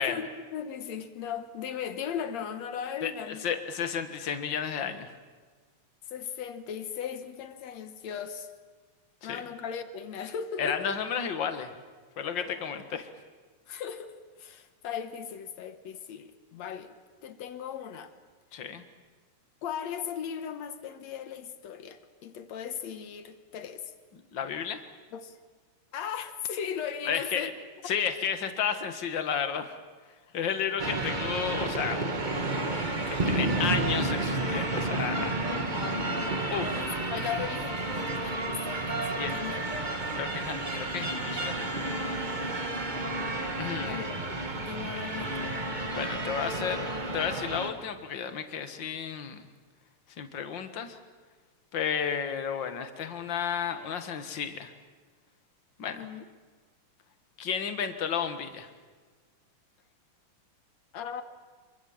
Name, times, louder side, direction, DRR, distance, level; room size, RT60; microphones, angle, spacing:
voice 1, 0.0-3.6 6.1-8.5 9.2-11.0 13.7-16.9 17.2-18.1 19.6-23.9 25.1-25.4 25.9-27.5 30.3-30.4 35.5-36.1 36.7-39.7 43.8-45.6 55.9-56.3 60.9-61.2, left 8 dB, 65° left, 10 dB, 2.1 m, -38 dB
voice 2, 3.0-5.1 9.3-9.4 10.6-11.7 12.2-13.1 18.5-18.8 24.3-24.8 27.1-27.5 27.9-29.7 30.3-32.0 33.1-35.4 36.5-36.8 39.2-39.4 40.2-42.2 43.6-44.0 45.9-46.9 47.1-49.4 50.2-51.0 51.7-54.7 55.8-56.0 57.4-58.7, left 7 dB, 45° left, 8 dB, 1.6 m, -32 dB
sound 1, 30.8-47.7, right 2 dB, 60° right, 0.4 m, -31 dB
27.0 x 23.5 x 7.3 m, 1.4 s
omnidirectional pair, 3.8 m